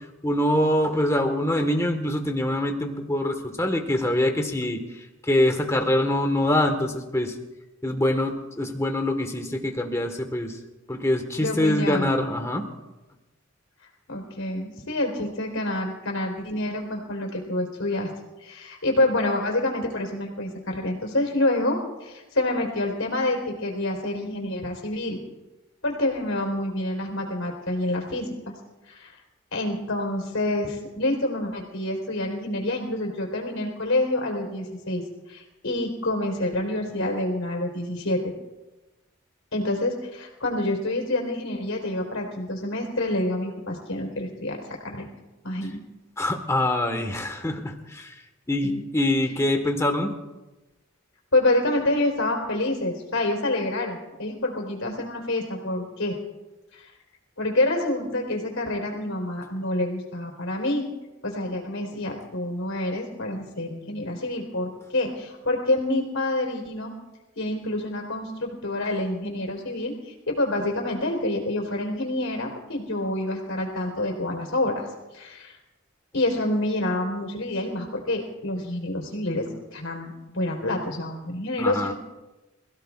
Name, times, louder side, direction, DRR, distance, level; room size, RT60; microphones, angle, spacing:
voice 1, 0.2-4.8 5.3-7.3 7.8-10.5 10.9-12.7 46.2-48.1 48.5-50.1 81.6-81.9, left 1 dB, 15° left, 4 dB, 1.5 m, -24 dB
voice 2, 11.4-12.1 14.1-18.1 18.4-25.2 25.8-28.3 28.9-29.1 29.5-35.0 35.3-38.3 39.5-44.6 44.8-45.1 45.4-45.8 48.6-48.8 51.3-56.2 56.7-56.9 57.4-60.9 61.2-66.9 67.4-74.8 75.1-75.6 76.1-81.9, left 1 dB, 80° left, 1 dB, 3.9 m, -27 dB
27.0 x 16.5 x 2.5 m, 1.1 s
head